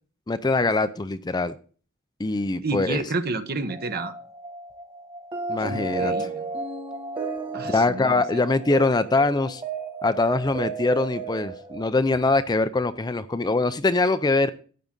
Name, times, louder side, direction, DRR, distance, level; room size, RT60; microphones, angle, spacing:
voice 1, 0.3-1.5 2.2-3.0 5.5-6.3 7.6-9.6 10.0-14.5, left 3 dB, 20° left, 12 dB, 0.5 m, -23 dB
voice 2, 2.6-4.1 5.6-6.4 7.5-8.4, right 3 dB, 45° right, 9 dB, 1.1 m, -30 dB
sound 1, 3.7-11.9, right 4 dB, 25° right, 2.0 m, -33 dB
12.0 x 8.6 x 3.9 m, 0.40 s
head